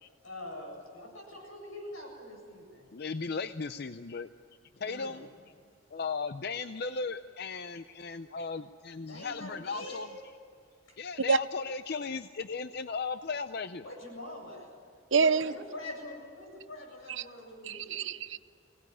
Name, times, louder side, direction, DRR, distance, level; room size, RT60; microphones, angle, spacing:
voice 1, 0.2-2.9 4.8-5.2 9.1-10.1 10.9-11.0 13.8-14.7 15.1-18.0, left 1 dB, 90° left, 1 dB, 7.8 m, -44 dB
voice 2, 2.9-4.3 4.8-5.3 5.9-10.1 11.0-13.8, left 4 dB, 50° left, 11 dB, 0.6 m, -36 dB
voice 3, 15.1-15.5 17.1-17.2 17.6-18.4, right 5 dB, 70° right, 15 dB, 0.7 m, -26 dB
24.0 x 18.0 x 9.7 m, 2.4 s
head